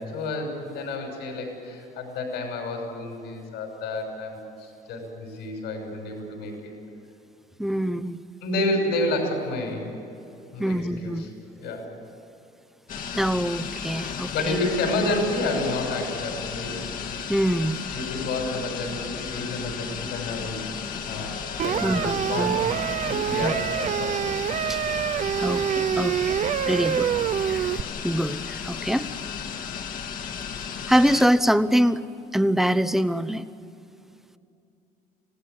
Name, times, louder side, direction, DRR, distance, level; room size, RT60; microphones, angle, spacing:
voice 1, 0.0-6.7 8.4-9.9 10.5-11.3 11.6-11.9 14.3-16.8 17.6-20.7 21.0-22.6 23.0-24.7, left 2 dB, 85° left, 1 dB, 6.1 m, -30 dB
voice 2, 7.6-8.2 10.6-11.3 13.1-14.6 17.3-17.8 21.8-22.6 23.4-23.5 24.7-24.8 25.4-26.4 26.7-27.1 27.5-27.7 28.0-29.1 30.9-32.0 32.3-33.4, equal, ahead, 12 dB, 0.9 m, -24 dB
sound 1, 12.9-31.3, left 7 dB, 55° left, 1.6 m, -34 dB
sound 2, 21.6-27.8, right 9 dB, 45° right, 0.6 m, -26 dB
27.0 x 16.5 x 9.6 m, 2.7 s
cardioid pair, 110°, 17 cm